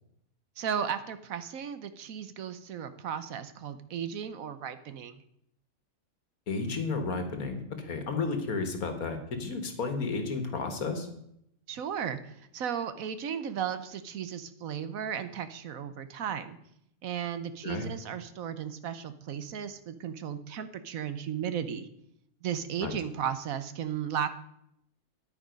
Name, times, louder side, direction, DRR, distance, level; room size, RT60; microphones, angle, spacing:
voice 1, 0.6-5.2 11.7-16.6 17.0-21.9 22.4-24.3, right 8 dB, 70° right, 12 dB, 1.2 m, -35 dB
voice 2, 6.5-11.1 17.6-17.9 22.8-22.9, left 4 dB, 70° left, 7 dB, 1.9 m, -32 dB
10.5 x 9.1 x 5.2 m, 0.75 s
omnidirectional pair, 1.6 m